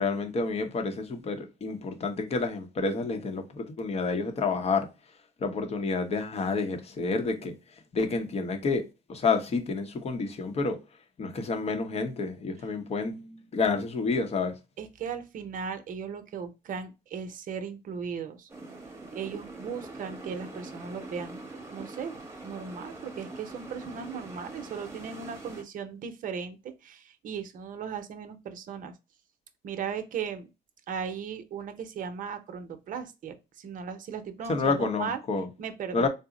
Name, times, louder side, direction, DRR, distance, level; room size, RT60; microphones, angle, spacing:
voice 1, 0.0-4.9 5.4-7.5 7.9-8.8 9.1-10.8 11.2-14.5 34.5-35.5 35.9-36.1, left 4 dB, 40° left, 0.8 m, -29 dB
voice 2, 14.8-18.5 19.1-21.4 21.7-22.1 22.4-28.9 29.6-30.5 30.9-35.2 35.6-36.1, right 6 dB, 55° right, 0.7 m, -37 dB
sound 1, 18.5-25.6, right 2 dB, 15° right, 1.0 m, -43 dB
3.9 x 2.0 x 3.7 m
cardioid pair, 110°, 17 cm